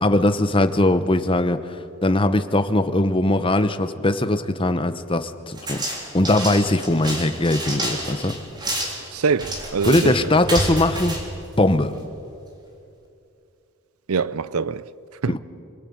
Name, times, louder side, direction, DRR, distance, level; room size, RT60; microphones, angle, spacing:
voice 1, 0.0-1.6 2.0-5.8 6.1-8.4 9.8-11.2 11.6-11.9 15.3-15.4, left 1 dB, 25° left, 1.0 m, -20 dB
sound 1, 5.6-12.1, right 1 dB, 20° right, 3.7 m, -29 dB
voice 2, 9.1-10.3 14.1-14.8 15.2-15.3, right 5 dB, 80° right, 0.6 m, -24 dB
26.5 x 20.5 x 8.8 m
head